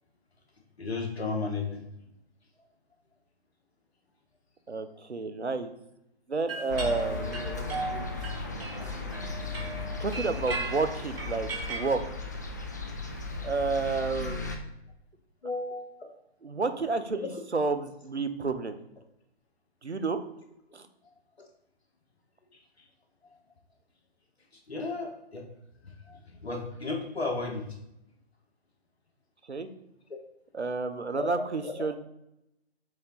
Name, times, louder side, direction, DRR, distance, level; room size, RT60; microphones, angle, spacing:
voice 1, 0.8-1.8 15.4-15.9 17.1-17.4 21.4-21.5 24.7-25.4 25.8-27.7 31.2-31.7, left 3 dB, 75° left, 3 dB, 1.6 m, -34 dB
voice 2, 4.7-5.7 6.3-7.4 10.0-12.2 13.4-14.4 16.4-18.7 19.8-20.2 20.7-20.9 29.5-29.7 30.5-32.0, right 4 dB, 85° right, 9 dB, 1.0 m, -30 dB
sound 1, 6.5-11.9, right 3 dB, 65° right, 2.3 m, -37 dB
sound 2, 6.7-14.6, left 3 dB, 20° left, 0.3 m, -36 dB
7.7 x 3.8 x 4.1 m, 0.82 s
figure-of-eight pair, 130°, 32 cm